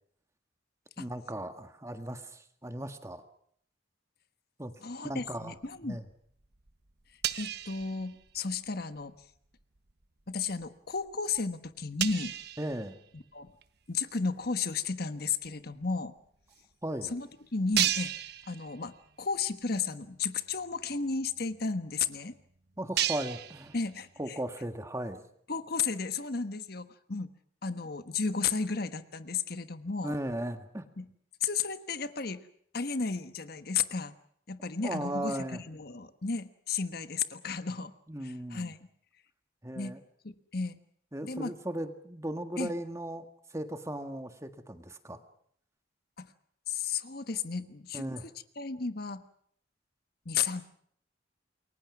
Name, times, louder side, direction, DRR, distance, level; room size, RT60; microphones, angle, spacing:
voice 1, 1.0-3.2 4.6-4.7 5.0-5.5 5.8-6.0 12.6-13.0 16.8-17.1 22.8-23.7 24.2-25.2 30.0-30.8 34.8-35.6 38.1-38.7 39.6-40.0 41.1-45.2 47.9-48.3, right 1 dB, 15° right, 8 dB, 1.7 m, -37 dB
voice 2, 4.8-6.0 7.4-9.1 10.3-12.3 13.1-13.5 13.9-16.1 17.1-18.1 18.5-22.3 23.7-24.4 25.5-27.3 27.6-30.1 31.0-31.1 31.4-32.4 32.7-34.1 34.5-37.9 38.2-38.8 39.7-40.0 40.2-40.8 41.2-41.5 42.6-42.7 46.2-46.3 46.7-48.0 48.6-49.2 50.2-50.6, left 5 dB, 55° left, 11 dB, 1.3 m, -33 dB
sound 1, 5.6-6.1 6.4-8.7 9.0-9.2 9.7-10.0 10.6-10.7 11.1-11.2 11.3-11.4 12.0-13.6 14.2-14.3 15.4-15.5 15.7-15.8 16.5-16.6 17.0-17.1 17.7-19.2 19.5-19.7 20.1-20.2 20.4-24.3, right 11 dB, 60° right, 1.2 m, -35 dB
28.5 x 23.0 x 6.1 m, 0.65 s
head